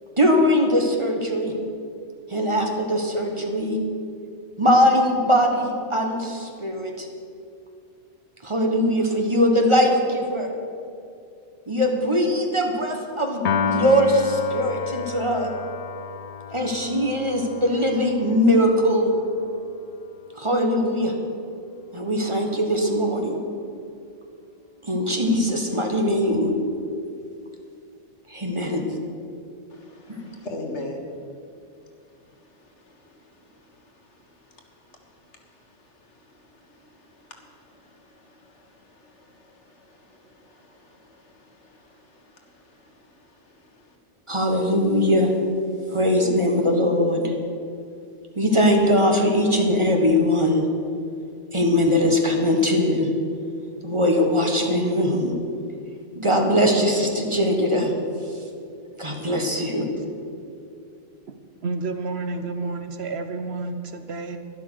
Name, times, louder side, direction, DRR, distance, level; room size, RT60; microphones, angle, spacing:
voice 1, 0.2-1.5 2.3-3.8 4.6-7.1 8.4-10.5 11.7-15.5 16.5-19.1 20.3-21.1 21.9-23.4 24.8-26.5 28.3-28.8 30.1-30.2 44.3-45.3 45.9-47.3 48.3-50.6 51.5-53.1 53.8-55.3 56.1-57.9 59.0-59.9, equal, 25° right, 2 dB, 1.5 m, -21 dB
Piano, 13.4-19.8, left 6 dB, 55° left, 0.4 m, -31 dB
voice 2, 29.7-31.1 31.9-44.0, left 2 dB, 70° left, 2 dB, 1.9 m, -44 dB
voice 3, 61.6-64.4, right 3 dB, 65° right, 8 dB, 1.0 m, -30 dB
11.5 x 11.5 x 6.5 m, 2.5 s
omnidirectional pair, 1.2 m